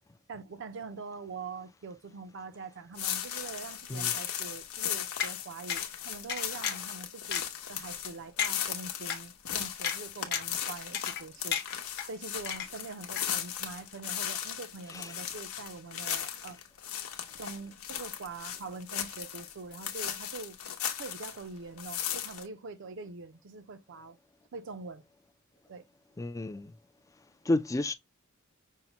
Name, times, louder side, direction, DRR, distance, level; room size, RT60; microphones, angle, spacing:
voice 1, 0.3-11.6 12.0-16.6 17.4-20.6 21.0-24.2 24.5-25.0 25.7-25.9, right 4 dB, 60° right, 0.5 m, -44 dB
sound 1, 2.9-21.5 21.8-22.4, left 10 dB, 90° left, 0.9 m, -37 dB
sound 2, 5.2-5.3 5.7-5.8 6.3-6.9 7.3-7.4 7.9-8.0 8.4-8.5 9.1-9.2 9.8-10.0 10.3-10.6 10.9-11.2 11.5-12.1 12.5-12.9 13.2-13.3, left 8 dB, 50° left, 0.9 m, -32 dB
voice 2, 26.2-26.7 27.5-27.9, left 2 dB, 15° left, 0.3 m, -31 dB
5.5 x 2.1 x 2.8 m
head